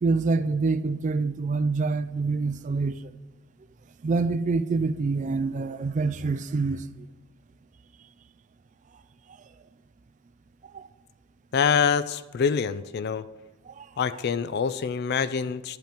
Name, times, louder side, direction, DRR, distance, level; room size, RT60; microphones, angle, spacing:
voice 1, 0.0-3.1 4.0-7.1 10.7-10.9 13.7-13.9, right 3 dB, 35° right, 0.3 m, -26 dB
voice 2, 11.5-13.3 14.0-15.8, left 6 dB, 50° left, 0.4 m, -25 dB
10.0 x 5.8 x 4.5 m
head